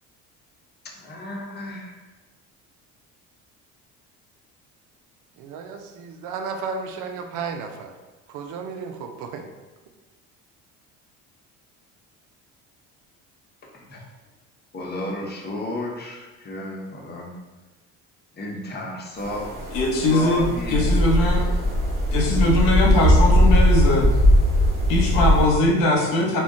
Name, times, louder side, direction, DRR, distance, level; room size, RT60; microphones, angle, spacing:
voice 1, 1.0-2.0 13.7-14.0 14.7-17.3 18.3-19.5 20.1-20.8 22.3-22.6, left 1 dB, 30° left, -1 dB, 0.7 m, -32 dB
voice 2, 5.4-7.9 8.3-9.5, right 5 dB, 65° right, 5 dB, 0.5 m, -33 dB
sound 1, 19.2-25.5, equal, 30° right, 1.1 m, -19 dB
voice 3, 19.7-21.5 22.1-24.1 24.9-26.4, left 2 dB, 75° left, 0 dB, 0.8 m, -21 dB
2.3 x 2.2 x 3.7 m, 1.2 s
supercardioid pair, 85°, 33 cm